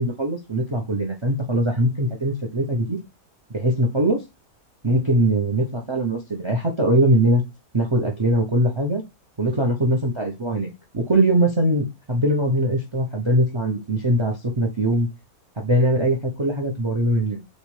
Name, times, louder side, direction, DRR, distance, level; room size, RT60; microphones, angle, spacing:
voice 1, 0.0-3.0 3.5-4.2 4.8-7.4 7.7-9.0 9.4-15.1 15.6-17.4, right 1 dB, 50° right, 2 dB, 0.3 m, -21 dB
6.5 x 2.2 x 3.1 m, 0.24 s
omnidirectional pair, 1.6 m